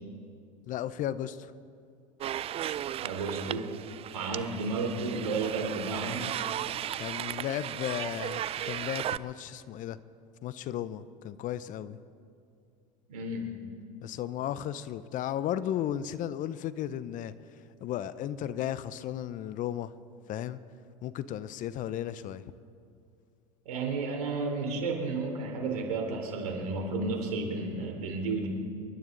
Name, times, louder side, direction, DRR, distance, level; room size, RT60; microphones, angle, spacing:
voice 1, 0.7-1.5 7.0-10.0 10.4-12.0 14.0-17.3 17.8-19.9 20.3-20.6 21.0-22.4, left 11 dB, 45° left, 16 dB, 0.7 m, -34 dB
sound 1, 2.2-9.2, right 11 dB, 30° right, 0.4 m, -36 dB
voice 2, 3.0-3.7 4.1-6.3 13.1-13.5 23.6-28.5, right 3 dB, 80° right, 2 dB, 3.5 m, -32 dB
27.5 x 12.0 x 3.9 m, 2.4 s
hypercardioid pair, 90°, 19 cm